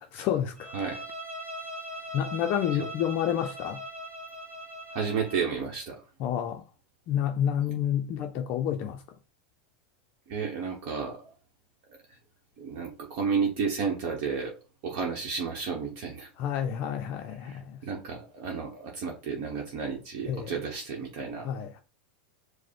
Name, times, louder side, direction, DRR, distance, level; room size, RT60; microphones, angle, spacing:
voice 1, 0.1-0.7 2.1-3.8 6.2-6.6 7.1-9.0 16.4-17.8 20.3-20.5 21.4-21.8, left 10 dB, 45° left, 0.4 m, -29 dB
Bowed string instrument, 0.6-5.5, equal, 20° right, 2.0 m, -40 dB
voice 2, 4.9-6.0 10.3-11.3 12.1-12.2 12.6-14.5 14.8-16.3 17.4-21.5, right 5 dB, 50° right, 0.9 m, -32 dB
5.1 x 2.0 x 4.3 m
supercardioid pair, 135°, 6 cm